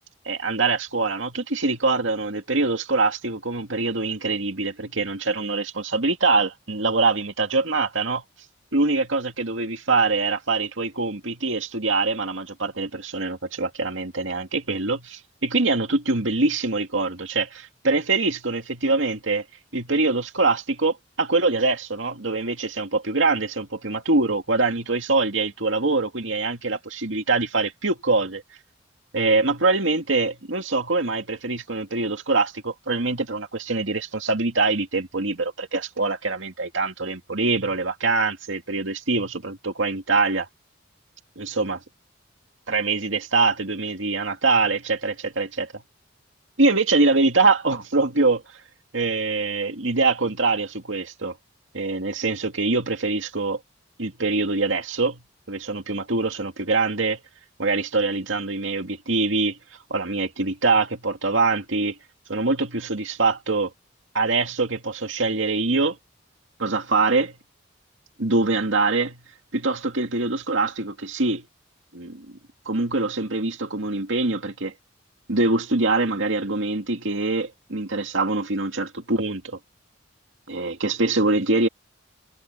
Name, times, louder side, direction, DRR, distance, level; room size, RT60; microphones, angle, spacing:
voice 1, 0.3-8.2 8.7-19.4 19.7-28.4 29.1-40.5 41.4-41.8 42.7-45.8 46.6-48.4 48.9-51.4 51.7-53.6 54.0-55.2 55.5-57.2 57.6-59.6 59.9-62.0 62.3-63.7 64.1-66.0 66.6-67.4 68.2-69.2 69.5-71.4 71.9-72.3 72.7-74.7 75.3-79.6 80.5-81.7, right 3 dB, 70° right, 2.3 m, -24 dB
head